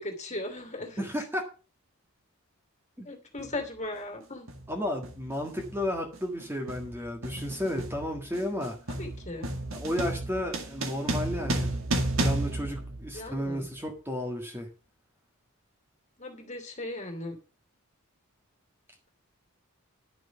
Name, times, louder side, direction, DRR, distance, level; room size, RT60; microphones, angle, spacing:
voice 1, 0.0-1.1 3.0-4.5 9.0-9.5 13.1-13.7 16.2-17.4, left 2 dB, 30° left, 3 dB, 2.6 m, -37 dB
voice 2, 1.0-1.4 3.0-3.1 4.7-8.7 9.7-11.7 12.2-14.7, left 1 dB, 10° right, 1 dB, 1.7 m, -33 dB
sound 1, 3.4-3.6 4.5-4.7 5.0-13.6, right 1 dB, 60° right, 2.2 m, -33 dB
11.0 x 6.2 x 6.9 m, 0.36 s
head